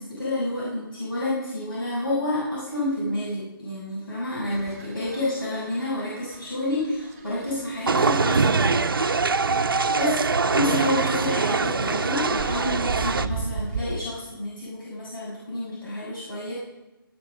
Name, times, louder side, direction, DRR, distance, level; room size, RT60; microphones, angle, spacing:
voice 1, 0.0-8.8 10.0-16.5, left 1 dB, 65° left, -7 dB, 7.0 m, -29 dB
sound 1, 4.5-14.0, right 4 dB, 10° right, 1.4 m, -38 dB
sound 2, 7.9-13.3, right 4 dB, 65° right, 0.9 m, -23 dB
19.0 x 8.1 x 6.6 m, 1.0 s
hypercardioid pair, 180°, 12 cm